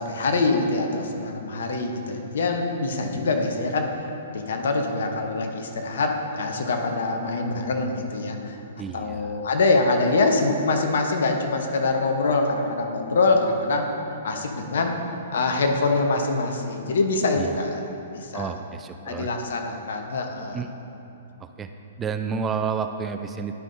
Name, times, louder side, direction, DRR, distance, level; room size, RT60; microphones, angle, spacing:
voice 1, 0.0-4.0 4.3-8.6 8.9-14.0 14.2-15.0 15.3-17.9 18.1-18.5 19.0-20.6, left 3 dB, 65° left, 3 dB, 0.9 m, -24 dB
voice 2, 8.8-9.4 17.4-17.6 18.3-19.3 20.5-20.7 21.4-21.7 22.0-23.6, right 6 dB, 20° right, 7 dB, 0.3 m, -30 dB
11.5 x 5.4 x 2.6 m, 2.9 s
figure-of-eight pair, 115°, 0 cm